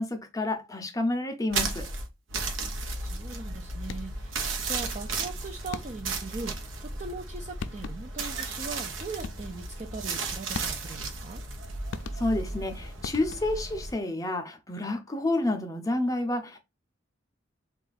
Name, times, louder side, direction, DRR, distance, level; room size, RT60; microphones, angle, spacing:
voice 1, 0.0-1.9 12.1-16.6, left 2 dB, 15° left, 0.5 m, -29 dB
sound 1, 1.5-13.9, right 3 dB, 85° right, 0.8 m, -34 dB
voice 2, 2.9-11.4, right 3 dB, 35° right, 0.4 m, -40 dB
sound 2, 3.8-4.3 5.7-6.2 7.3-7.4 7.6-8.2 9.2-9.7 10.5-11.1 11.9-12.6 13.0-13.7, left 5 dB, 80° left, 0.4 m, -40 dB
3.8 x 2.4 x 4.0 m
head